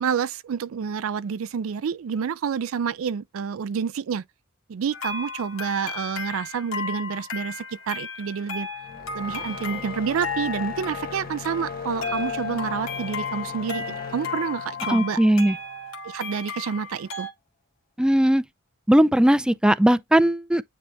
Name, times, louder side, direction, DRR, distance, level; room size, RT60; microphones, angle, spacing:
voice 1, 0.0-4.2 4.7-8.7 9.1-15.2 16.0-17.3, right 7 dB, 80° right, 0.4 m, -28 dB
sound 1, 4.9-17.3, left 4 dB, 85° left, 1.9 m, -34 dB
sound 2, 8.8-16.1, left 5 dB, 45° left, 1.0 m, -39 dB
voice 2, 14.9-15.6 18.0-18.4 18.9-20.6, right 1 dB, 5° right, 0.4 m, -18 dB
9.4 x 3.2 x 3.4 m
head